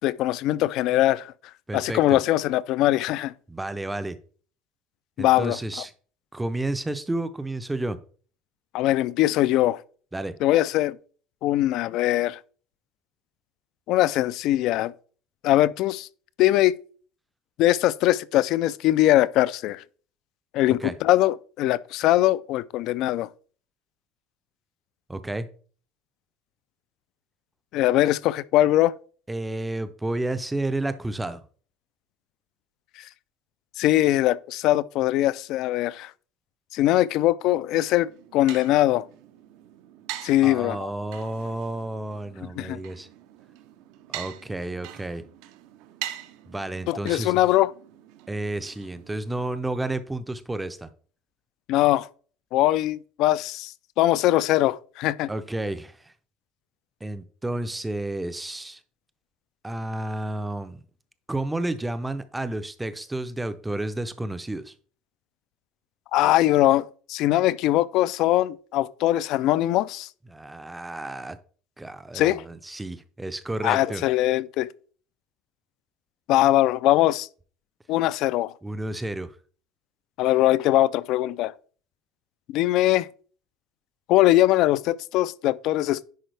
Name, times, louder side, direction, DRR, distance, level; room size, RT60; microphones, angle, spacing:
voice 1, 0.0-1.3 1.7-3.3 5.2-5.6 8.7-9.8 10.4-11.0 11.4-12.4 13.9-14.9 15.4-16.1 16.4-16.7 17.6-19.8 20.5-23.3 27.7-28.9 33.8-36.1 36.7-39.0 40.2-40.8 42.6-42.8 46.9-47.7 51.7-52.1 52.5-55.3 66.1-70.1 72.1-72.4 73.6-74.7 76.3-77.3 77.9-78.5 80.2-81.5 82.5-83.1 84.1-86.0, left 15 dB, 55° left, 0.3 m, -21 dB
voice 2, 1.7-2.2 3.5-4.2 5.2-5.9 6.3-8.0 10.1-10.3 20.8-20.9 25.1-25.5 29.3-31.4 40.4-43.1 44.1-45.2 46.5-47.4 48.3-50.9 55.3-56.1 57.0-58.8 59.6-60.8 61.3-64.7 70.3-71.4 71.8-74.0 78.6-79.4, right 2 dB, 5° right, 0.5 m, -31 dB
sound 1, 37.9-49.5, right 13 dB, 70° right, 0.6 m, -43 dB
10.0 x 4.5 x 3.3 m
cardioid pair, 160°, 0 cm